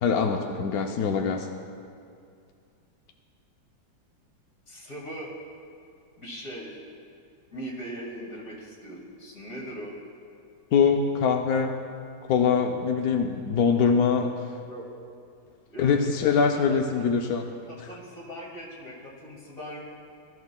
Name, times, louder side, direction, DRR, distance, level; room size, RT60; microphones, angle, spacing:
voice 1, 0.0-1.5 10.7-11.8 12.3-14.3 15.8-17.5, left 6 dB, 70° left, 3 dB, 0.9 m, -23 dB
voice 2, 4.7-5.3 6.2-6.8 7.5-9.9 14.7-14.9 15.7-15.9 16.3-16.8 17.7-19.8, equal, 45° left, -3 dB, 2.4 m, -40 dB
20.0 x 13.0 x 2.2 m, 2.4 s
omnidirectional pair, 2.1 m